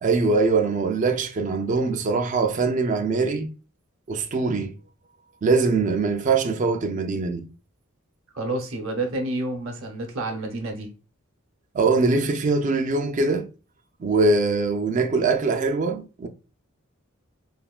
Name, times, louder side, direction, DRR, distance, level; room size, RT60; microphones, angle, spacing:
voice 1, 0.0-3.5 4.1-4.8 5.4-7.5 11.7-13.5 14.0-16.3, right 3 dB, 35° right, 0.4 m, -22 dB
voice 2, 8.3-10.9, right 2 dB, 65° right, 0.8 m, -29 dB
3.3 x 2.2 x 2.3 m
head